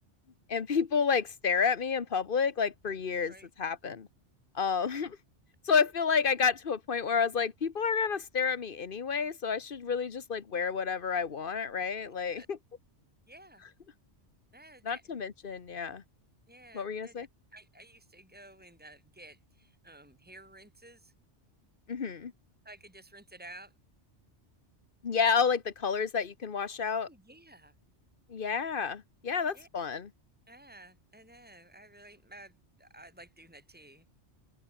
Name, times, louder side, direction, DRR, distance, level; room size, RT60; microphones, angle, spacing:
voice 1, 0.5-4.1 4.5-5.2 5.6-12.6 14.8-16.0 16.7-17.3 21.9-22.3 25.0-27.1 28.3-30.1, left 6 dB, 50° left, 1.3 m, -30 dB
voice 2, 12.0-12.5 13.3-13.6 14.5-15.0 16.5-17.2 17.5-21.1 22.6-23.7 27.0-27.7 29.3-29.7 30.5-34.0, right 1 dB, 10° right, 4.1 m, -53 dB
open air
omnidirectional pair, 1.2 m